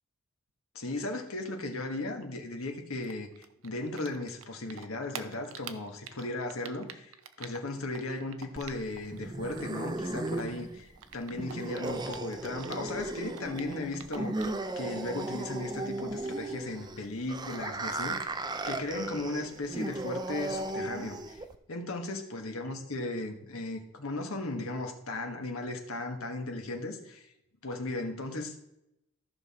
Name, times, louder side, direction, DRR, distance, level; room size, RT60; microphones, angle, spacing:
voice 1, 0.7-21.4 21.7-27.3 27.6-28.6, left 2 dB, 70° left, 4 dB, 1.4 m, -36 dB
Typing, 3.0-4.4 4.7-9.2 9.4-13.0 13.3-14.6, right 8 dB, 70° right, 0.7 m, -46 dB
sound 1, 8.6-21.6, right 2 dB, 20° right, 0.4 m, -36 dB
14.0 x 5.7 x 4.2 m, 0.84 s
head